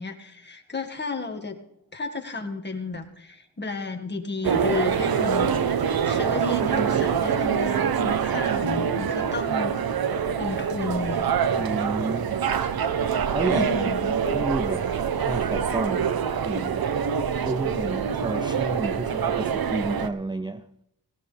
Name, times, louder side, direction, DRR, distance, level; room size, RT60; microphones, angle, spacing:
voice 1, 0.0-1.6 1.9-9.7 10.4-11.3 13.5-14.2, left 3 dB, 25° left, 1.9 m, -33 dB
sound 1, 4.4-20.1, right 7 dB, 65° right, 0.9 m, -25 dB
voice 2, 11.6-12.4 13.3-13.7 14.3-14.9 15.2-16.9 17.4-20.7, right 2 dB, 10° right, 0.4 m, -30 dB
18.5 x 15.0 x 3.4 m
wide cardioid pair, 110°, 39 cm